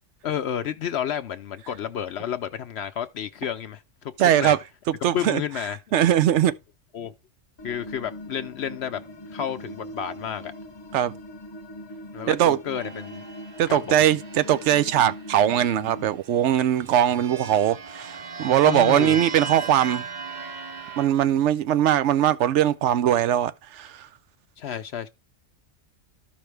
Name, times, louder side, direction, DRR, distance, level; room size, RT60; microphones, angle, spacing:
voice 1, 0.2-4.6 5.0-5.8 6.9-7.1 7.6-9.0 9.3-10.5 12.1-13.2 13.7-14.0 18.6-19.2 24.6-25.1, left 9 dB, 65° left, 0.8 m, -31 dB
voice 2, 4.2-4.6 5.0-5.4 5.9-6.5 10.9-11.1 12.3-12.6 13.6-20.0 21.0-24.1, right 11 dB, 70° right, 0.9 m, -21 dB
sound 1, 7.6-16.1, equal, 25° left, 0.7 m, -40 dB
sound 2, 12.7-15.4 16.2-21.1, right 5 dB, 45° right, 0.8 m, -37 dB
13.0 x 5.2 x 3.3 m
omnidirectional pair, 1.3 m